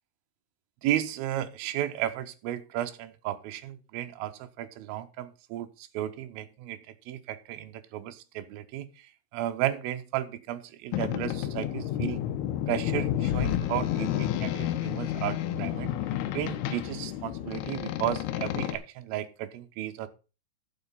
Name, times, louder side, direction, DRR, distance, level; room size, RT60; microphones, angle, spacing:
voice 1, 0.8-12.2 12.7-15.9 16.3-20.1, right 12 dB, 75° right, 2.5 m, -34 dB
Boat Water vehicle, 10.9-18.8, left 11 dB, 85° left, 2.9 m, -30 dB
9.8 x 6.9 x 5.6 m
omnidirectional pair, 4.6 m